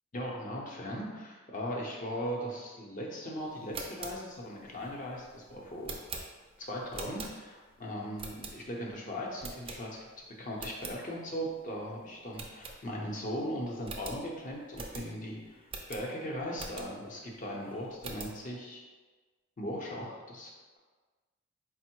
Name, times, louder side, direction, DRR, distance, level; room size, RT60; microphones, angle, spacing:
voice 1, 0.1-6.0 6.6-18.8 19.6-20.8, equal, 40° left, -2 dB, 0.7 m, -38 dB
sound 1, 3.5-7.7 8.2-8.9 9.4-10.2 10.5-11.0 11.4-11.5 11.8-11.9 12.3-13.2 13.5-13.6 13.8-17.1 17.6-18.4, right 3 dB, 30° right, 0.4 m, -44 dB
4.3 x 2.0 x 4.4 m, 1.3 s
head